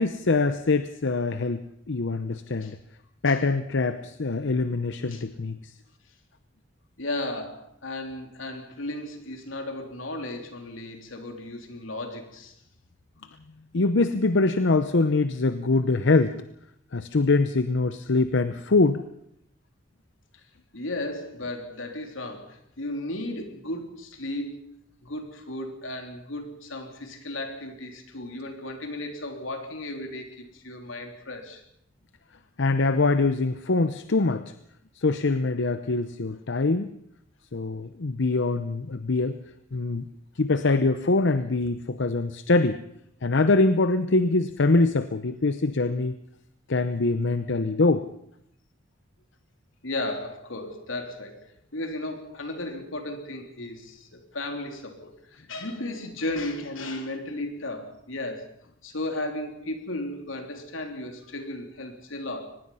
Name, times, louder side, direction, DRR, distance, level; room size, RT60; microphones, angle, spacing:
voice 1, 0.0-2.8 3.2-5.6 13.7-16.4 16.9-19.0 32.6-34.5 35.0-36.9 37.5-39.4 39.7-40.0 40.4-42.8 43.2-46.2 46.7-48.1, left 3 dB, 65° left, 11 dB, 0.8 m, -23 dB
voice 2, 7.0-12.5 20.7-24.6 25.0-31.6 49.8-51.5 51.7-58.5 58.8-62.5, left 1 dB, 85° left, 4 dB, 3.3 m, -35 dB
23.5 x 20.0 x 5.6 m, 0.73 s
head